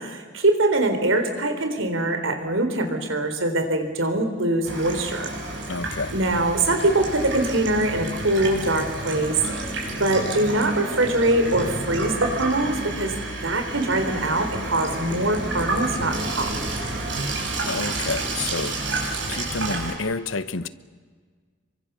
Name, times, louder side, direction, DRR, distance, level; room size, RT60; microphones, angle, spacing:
voice 1, 0.0-5.3 6.1-9.7 10.0-13.1 13.4-16.5, right 2 dB, 85° right, 3.8 m, -23 dB
Water tap faucet / Sink (filling or washing), 4.6-19.9, right 2 dB, 65° right, 6.2 m, -30 dB
voice 2, 5.7-6.2 17.7-18.8 19.3-20.7, left 3 dB, 90° left, 1.1 m, -29 dB
28.5 x 23.5 x 6.9 m
head